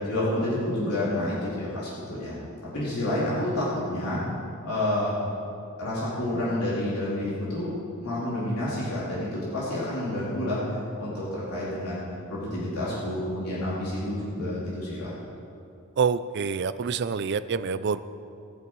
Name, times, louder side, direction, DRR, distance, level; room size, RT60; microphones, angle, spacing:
voice 1, 0.1-2.3 2.7-4.2 4.6-5.2 5.8-7.7 8.0-10.6 11.0-12.0 12.3-15.1, left 1 dB, 90° left, -8 dB, 3.5 m, -29 dB
voice 2, 16.0-18.0, right 5 dB, 50° right, 14 dB, 0.4 m, -26 dB
20.0 x 7.7 x 4.7 m, 2.7 s
head